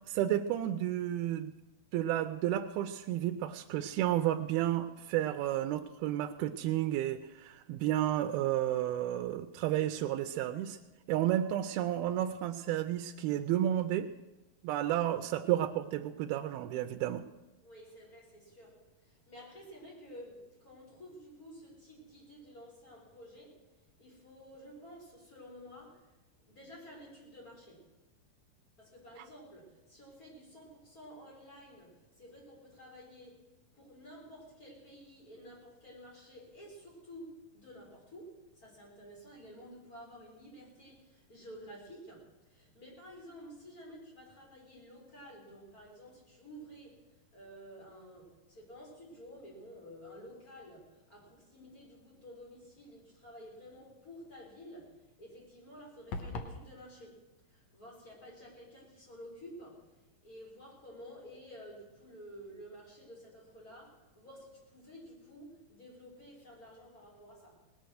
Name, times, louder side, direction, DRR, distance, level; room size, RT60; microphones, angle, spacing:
voice 1, 0.0-1.5 1.9-10.8 11.1-14.1 14.6-17.2 29.2-29.3, right 12 dB, 85° right, 6 dB, 2.5 m, -32 dB
voice 2, 17.6-23.7 24.0-26.1 26.4-27.9 28.8-33.4 33.7-67.6, equal, 25° left, -3 dB, 4.3 m, -52 dB
sound 1, 56.1-56.6, left 3 dB, 65° left, 1.8 m, -38 dB
19.0 x 9.3 x 6.3 m, 1.1 s
omnidirectional pair, 4.3 m